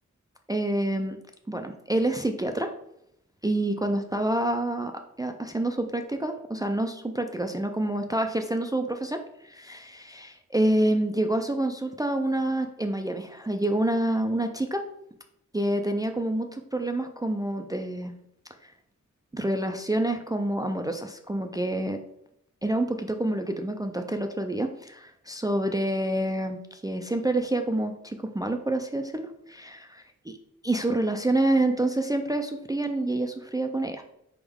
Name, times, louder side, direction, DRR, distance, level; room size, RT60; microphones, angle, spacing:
voice 1, 0.5-1.2 1.5-2.7 3.4-4.9 5.2-14.8 15.5-18.1 18.6-18.7 19.3-22.0 22.6-29.8 30.6-34.0, right 1 dB, 15° right, 5 dB, 0.3 m, -27 dB
3.9 x 3.5 x 3.5 m, 0.76 s
wide cardioid pair, 80°, 30 cm